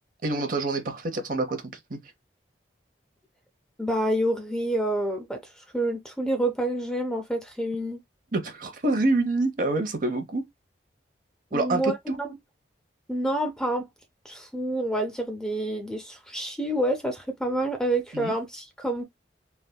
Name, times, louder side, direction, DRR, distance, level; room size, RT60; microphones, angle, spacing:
voice 1, 0.2-2.0 8.3-10.4 11.5-12.2 18.1-18.3, right 2 dB, 45° right, 0.7 m, -27 dB
voice 2, 3.8-8.0 11.5-12.3 13.1-13.8 14.2-19.0, right 1 dB, 5° left, 0.4 m, -28 dB
3.4 x 2.6 x 2.2 m
head